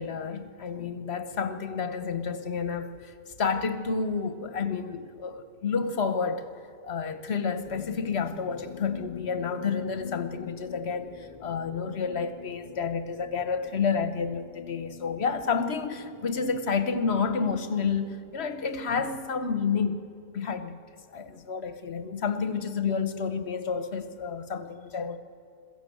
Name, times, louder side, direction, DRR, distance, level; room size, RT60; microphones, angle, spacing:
voice 1, 0.0-3.1 3.4-6.5 6.8-20.0 20.3-20.8 21.1-25.2, left 5 dB, 45° left, 1.1 m, -30 dB
sound 1, 7.7-18.8, left 7 dB, 60° left, 0.4 m, -46 dB
22.0 x 15.0 x 7.9 m
omnidirectional pair, 1.8 m